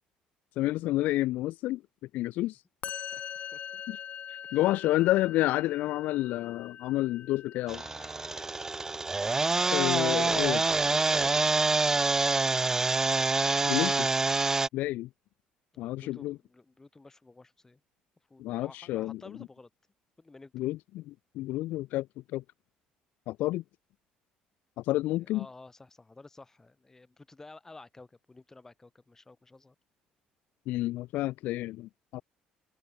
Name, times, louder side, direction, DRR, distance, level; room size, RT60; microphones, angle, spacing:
voice 1, 0.6-1.8 2.1-2.6 3.9-4.0 4.3-7.8 9.7-10.6 13.6-14.1 14.7-15.1 15.8-16.4 18.4-19.2 20.5-22.1 22.3-22.4 23.3-23.6 24.8-25.5 30.7-32.2, left 16 dB, 75° left, 0.4 m, -29 dB
Musical instrument, 2.8-10.1, left 9 dB, 55° left, 3.8 m, -44 dB
voice 2, 2.9-3.8 4.4-4.6 9.5-12.2 15.7-17.8 18.3-19.7 20.2-20.7 25.1-29.7, left 3 dB, 15° left, 6.7 m, -51 dB
sound 1, 7.7-14.7, right 3 dB, 20° right, 0.5 m, -26 dB
open air
cardioid pair, 105°, 3 cm